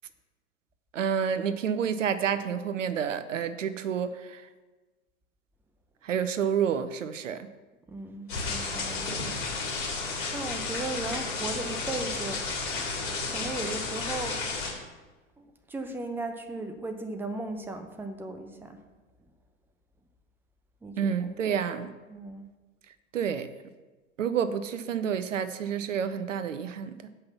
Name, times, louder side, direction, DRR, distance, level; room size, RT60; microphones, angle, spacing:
voice 1, 0.9-4.4 6.0-7.5 21.0-21.9 23.1-23.5 24.2-27.1, right 7 dB, 70° right, 12 dB, 0.7 m, -29 dB
voice 2, 7.9-9.1 10.3-12.4 13.3-14.5 15.4-18.8 20.8-21.3 22.1-22.5, right 2 dB, 5° right, 7 dB, 0.7 m, -36 dB
sound 1, 8.3-14.7, left 4 dB, 55° left, 3.4 m, -32 dB
7.7 x 5.6 x 7.0 m, 1.2 s
figure-of-eight pair, 90°, 39 cm